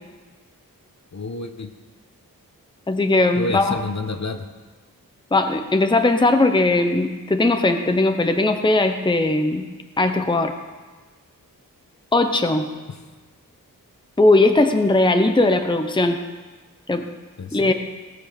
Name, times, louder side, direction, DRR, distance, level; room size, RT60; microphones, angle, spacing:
voice 1, 1.1-1.7 3.4-4.5 12.9-13.0 17.4-17.7, left 2 dB, 50° left, 7 dB, 1.0 m, -29 dB
voice 2, 2.9-3.8 5.3-9.7 10.0-10.5 12.1-12.7 14.2-16.2 16.9-17.1 17.5-17.7, left 2 dB, 15° left, 6 dB, 0.7 m, -18 dB
18.0 x 6.2 x 6.8 m, 1.3 s
wide cardioid pair, 85°, 35 cm